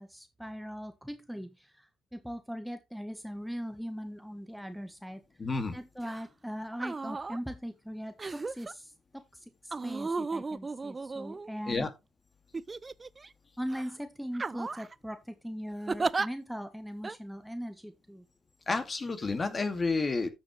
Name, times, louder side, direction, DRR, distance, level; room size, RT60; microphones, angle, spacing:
voice 1, 0.0-5.2 5.7-9.2 9.6-11.9 13.6-18.2, equal, ahead, 1.4 m, -40 dB
voice 2, 5.4-5.8 11.7-11.9 18.7-20.3, left 3 dB, 35° left, 2.4 m, -30 dB
sound 1, 6.0-6.2 6.7-7.4 8.2-8.7 9.7-11.8 12.5-13.3 13.7-13.9 14.3-14.9 15.9-16.3 17.0-17.2, right 3 dB, 30° right, 0.5 m, -34 dB
13.0 x 6.7 x 3.3 m
hypercardioid pair, 45°, 0 cm